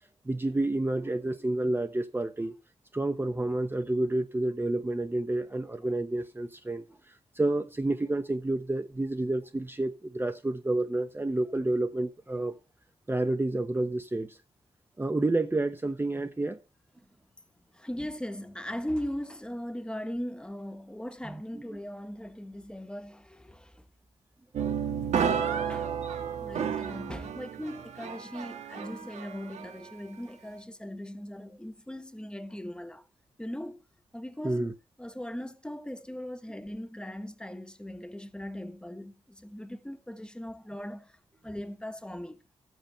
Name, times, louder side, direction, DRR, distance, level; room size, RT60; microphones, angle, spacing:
voice 1, 0.2-2.5 2.9-12.5 13.1-14.4 15.0-16.6 21.2-21.8 34.4-34.7, right 2 dB, 20° right, 1.0 m, -29 dB
voice 2, 17.7-23.9 25.1-25.3 25.7-25.9 26.2-33.1 33.4-33.8 34.1-34.6 35.0-41.2 41.4-42.4, equal, 10° left, 1.3 m, -39 dB
sound 1, 24.5-29.9, right 7 dB, 85° right, 1.5 m, -32 dB
13.0 x 8.0 x 4.4 m
cardioid pair, 70°, 12 cm